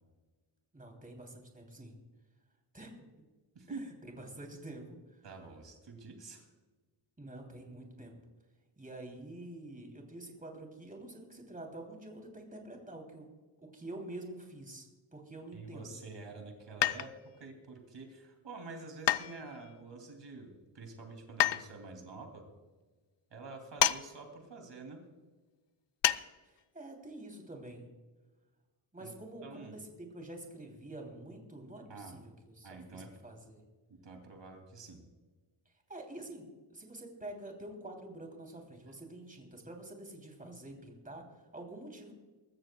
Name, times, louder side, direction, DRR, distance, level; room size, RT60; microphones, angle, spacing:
voice 1, 0.7-1.9 2.7-3.0 3.7-5.2 7.2-8.2 8.8-13.3 13.6-16.0 26.4-27.9 28.9-33.6 35.6-42.1, right 1 dB, 20° right, 2 dB, 3.0 m, -47 dB
voice 2, 3.5-3.8 5.2-6.5 15.5-22.4 23.3-25.0 29.0-29.1 29.4-29.8 31.9-32.2 32.6-33.1 33.9-35.0, right 3 dB, 65° right, 3 dB, 2.8 m, -48 dB
sound 1, 16.8-17.4 19.1-19.8 21.4-21.6 23.8-24.0 24.3-24.4 26.0-26.2 26.6-26.7, left 11 dB, 65° left, 0.6 m, -28 dB
24.0 x 14.0 x 2.3 m, 1.3 s
wide cardioid pair, 125°, 46 cm